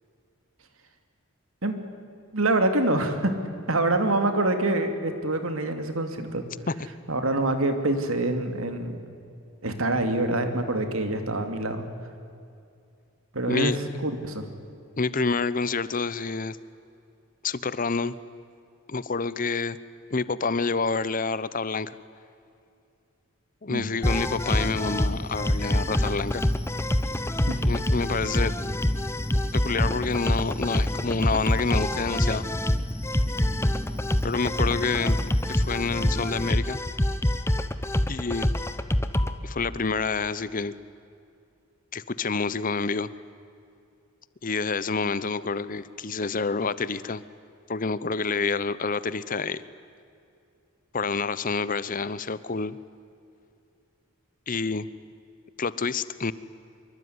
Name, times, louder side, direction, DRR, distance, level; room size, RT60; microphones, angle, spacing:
voice 1, 2.3-3.3 3.7-6.4 7.1-9.0 9.6-11.9 13.3-13.7 14.0-14.4 23.7-23.9 27.5-27.6, right 2 dB, 80° right, 7 dB, 2.9 m, -25 dB
voice 2, 13.5-13.8 14.9-16.6 17.4-18.1 18.9-19.8 20.1-22.0 23.6-26.4 27.6-28.6 29.5-32.5 34.2-35.2 35.5-36.8 38.1-38.5 39.4-40.7 41.9-43.1 44.4-47.2 47.7-49.6 50.9-52.8 54.5-54.9 55.6-56.3, left 4 dB, 40° left, 16 dB, 0.9 m, -28 dB
sound 1, 24.0-39.4, left 1 dB, 10° left, 1.0 m, -26 dB
25.5 x 24.0 x 9.7 m, 2.5 s
head